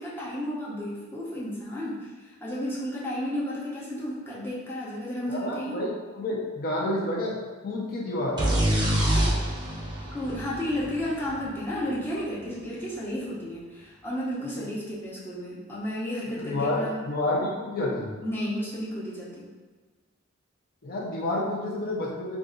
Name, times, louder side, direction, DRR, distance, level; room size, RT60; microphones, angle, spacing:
voice 1, 0.0-5.8 9.1-9.4 10.1-17.0 18.2-19.4, equal, 10° left, -7 dB, 0.7 m, -32 dB
voice 2, 5.3-7.4 7.6-8.4 14.6-14.7 16.4-18.1 20.8-22.4, left 1 dB, 50° left, -4 dB, 0.7 m, -29 dB
sound 1, 8.4-12.1, right 1 dB, 20° right, 0.7 m, -26 dB
2.6 x 2.4 x 3.7 m, 1.4 s
head